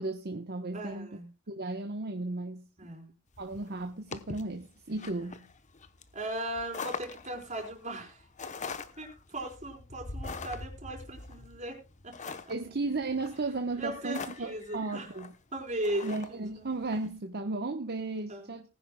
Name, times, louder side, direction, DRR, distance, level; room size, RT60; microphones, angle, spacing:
voice 1, 0.0-1.1 1.5-2.9 3.4-5.4 12.5-15.3 16.0-18.6, right 2 dB, 50° right, 1.1 m, -35 dB
voice 2, 0.7-1.3 2.8-3.1 5.2-5.4 6.1-8.3 9.0-11.8 12.0-12.3 13.8-15.1 15.5-16.4 18.3-18.6, right 1 dB, 35° right, 4.3 m, -38 dB
sound 1, 3.3-17.1, left 4 dB, 35° left, 0.9 m, -43 dB
19.5 x 10.0 x 2.3 m
head